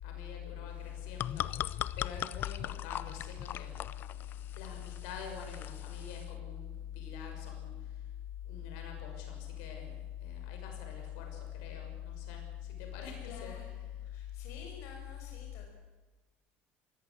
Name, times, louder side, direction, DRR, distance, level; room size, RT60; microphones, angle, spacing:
voice 1, 0.0-3.7 4.6-7.7 8.4-14.0, left 9 dB, 85° left, 3 dB, 6.1 m, -42 dB
sound 1, 0.8-6.3, left 12 dB, 45° left, 0.6 m, -40 dB
voice 2, 13.2-13.7 14.0-15.7, left 5 dB, 65° left, 1 dB, 5.4 m, -51 dB
22.5 x 17.0 x 8.3 m, 1.2 s
cardioid pair, 130°, 5 cm